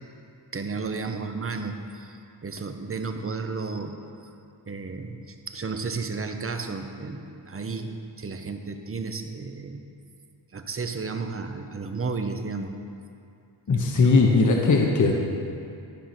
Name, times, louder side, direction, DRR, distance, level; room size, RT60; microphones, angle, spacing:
voice 1, 0.5-4.3 4.7-9.8 10.5-12.7 13.7-14.2, right 4 dB, 30° right, 6 dB, 0.8 m, -33 dB
voice 2, 13.7-15.1, left 3 dB, 40° left, 0 dB, 1.0 m, -19 dB
12.0 x 5.0 x 5.9 m, 2.5 s
cardioid pair, 75°, 47 cm